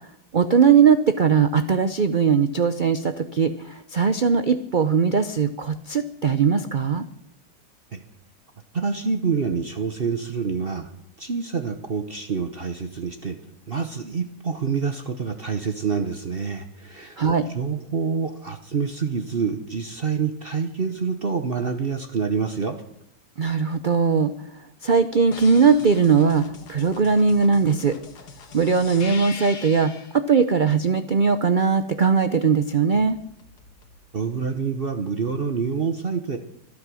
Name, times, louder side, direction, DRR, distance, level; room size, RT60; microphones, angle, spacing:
voice 1, 0.3-7.1 17.2-17.5 23.4-24.5 24.8-28.0 28.5-33.2, right 6 dB, 90° right, 11 dB, 0.4 m, -20 dB
voice 2, 8.7-10.9 11.2-13.4 13.7-17.2 17.5-22.8 34.1-36.4, right 5 dB, 40° right, 7 dB, 1.0 m, -27 dB
sound 1, 25.3-30.2 32.9-34.0, left 5 dB, 70° left, 2.0 m, -41 dB
25.0 x 8.6 x 6.2 m, 0.74 s
omnidirectional pair, 1.8 m